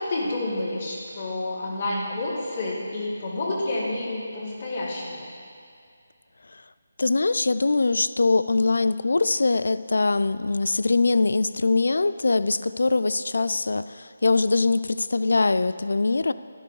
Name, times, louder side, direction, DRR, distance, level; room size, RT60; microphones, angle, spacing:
voice 1, 0.0-5.3, left 2 dB, 50° left, -6 dB, 2.6 m, -29 dB
voice 2, 7.0-16.3, left 3 dB, 75° left, 14 dB, 0.3 m, -22 dB
12.0 x 10.5 x 3.2 m, 2.3 s
figure-of-eight pair, 160°, 0 cm